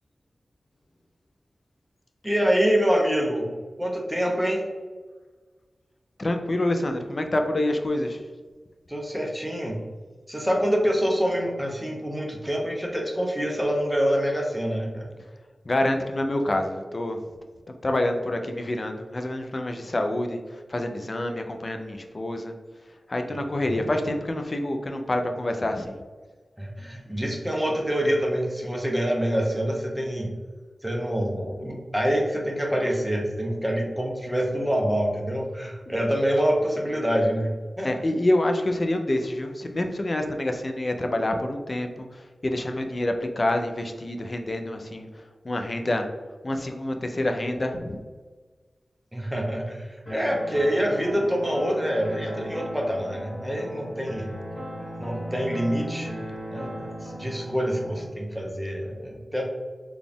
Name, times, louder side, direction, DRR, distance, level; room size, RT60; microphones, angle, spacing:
voice 1, 2.2-3.5 3.8-4.6 8.9-9.8 10.3-15.1 23.3-23.4 23.7-23.8 26.6-30.3 30.8-38.0 49.1-54.3 55.0-56.1 56.5-59.5, equal, ahead, -1 dB, 0.8 m, -26 dB
voice 2, 6.2-8.2 15.7-17.2 17.8-20.4 20.7-22.5 23.1-26.0 37.8-45.1 45.4-46.1 46.4-48.0, left 1 dB, 40° left, 5 dB, 0.4 m, -27 dB
sound 1, 50.1-58.1, equal, 25° left, 1.3 m, -37 dB
4.0 x 2.3 x 3.5 m, 1.4 s
wide cardioid pair, 85°, 0 cm